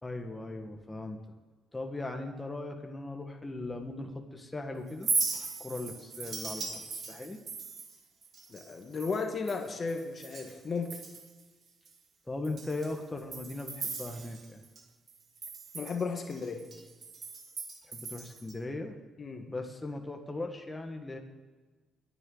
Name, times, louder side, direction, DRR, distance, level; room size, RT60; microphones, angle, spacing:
voice 1, 0.0-1.2 1.7-5.1 5.6-7.4 12.3-14.6 17.9-19.0 19.5-21.2, left 2 dB, 15° left, 3 dB, 1.5 m, -38 dB
Chink clink, 4.9-10.6 10.8-11.4 11.9-12.0 12.4-14.8 15.1-18.5, right 4 dB, 55° right, 2.3 m, -38 dB
voice 2, 8.5-11.0 15.7-16.6 19.2-19.5, left 4 dB, 40° left, 4 dB, 1.6 m, -34 dB
24.5 x 9.9 x 3.9 m, 1.3 s
cardioid pair, 90°, 0 cm